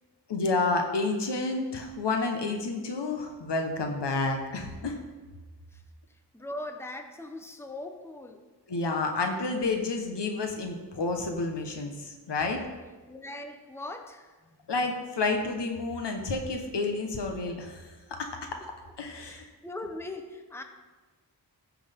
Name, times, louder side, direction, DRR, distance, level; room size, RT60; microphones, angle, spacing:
voice 1, 0.3-5.0 8.7-12.6 14.7-18.3 19.0-19.5, left 3 dB, 90° left, 4 dB, 1.3 m, -30 dB
voice 2, 6.3-8.4 13.1-14.3 19.2-20.6, left 2 dB, 5° left, 5 dB, 0.8 m, -40 dB
15.5 x 6.3 x 3.7 m, 1.3 s
wide cardioid pair, 115°, 40 cm